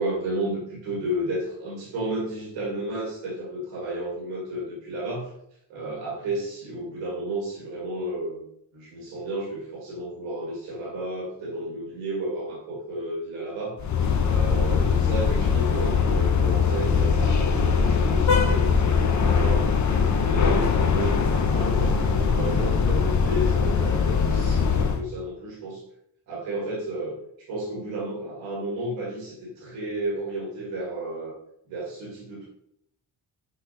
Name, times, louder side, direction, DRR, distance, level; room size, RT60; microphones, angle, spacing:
voice 1, 0.0-5.3 5.7-8.4 8.7-13.8 14.3-19.7 20.2-21.2 21.5-25.8 26.3-31.3 31.6-32.5, right 1 dB, 90° right, -4 dB, 1.7 m, -32 dB
sound 1, 13.8-25.0, left 6 dB, 40° left, 0.7 m, -21 dB
5.6 x 3.1 x 2.7 m, 0.73 s
supercardioid pair, 60°, 47 cm